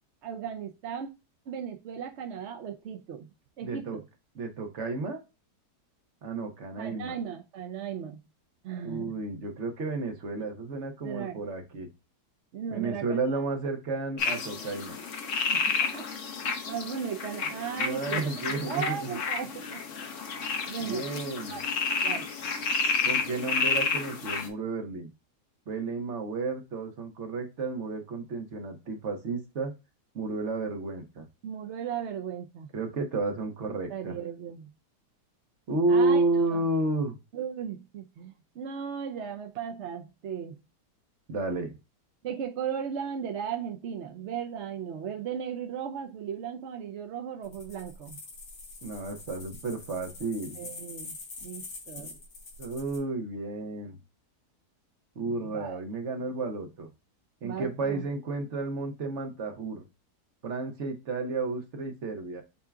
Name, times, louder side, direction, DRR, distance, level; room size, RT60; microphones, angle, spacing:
voice 1, 0.2-1.1 1.5-3.3 3.6-4.1 6.8-8.2 8.6-9.2 11.0-11.4 12.5-13.2 15.5-16.1 16.4-19.8 20.7-21.1 21.5-21.6 22.0-22.3 31.4-32.7 33.9-34.7 35.9-36.6 37.3-40.6 42.2-48.2 50.5-52.1 55.2-55.8 57.4-58.0, right 8 dB, 65° right, 0.7 m, -36 dB
voice 2, 3.6-4.0 4.3-5.2 6.2-7.2 8.8-11.9 12.7-15.0 17.8-19.2 20.8-21.6 23.0-25.1 25.7-29.7 30.1-31.2 32.7-34.1 35.7-37.2 41.3-41.7 48.8-50.6 52.6-54.0 55.1-56.9 57.4-59.8 60.4-62.4, right 3 dB, 50° right, 1.3 m, -31 dB
sound 1, 14.2-24.5, left 5 dB, 55° left, 1.1 m, -31 dB
sound 2, 47.4-53.0, left 3 dB, 90° left, 3.4 m, -45 dB
8.1 x 2.8 x 2.3 m
omnidirectional pair, 1.8 m